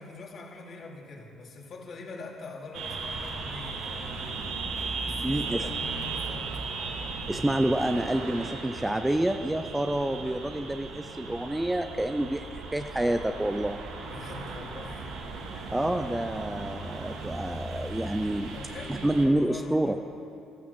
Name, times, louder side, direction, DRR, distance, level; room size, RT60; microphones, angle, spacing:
voice 1, 0.0-4.4 5.0-6.6 14.1-15.2 15.5-15.7 18.5-19.9, left 3 dB, 50° left, -1 dB, 3.1 m, -43 dB
sound 1, 2.7-19.3, right 4 dB, 80° right, 2.2 m, -37 dB
voice 2, 5.2-5.6 7.3-13.8 15.7-18.6 18.9-20.0, right 1 dB, 5° right, 7 dB, 0.6 m, -28 dB
14.5 x 14.0 x 7.0 m, 2.7 s
cardioid pair, 115°, 0 cm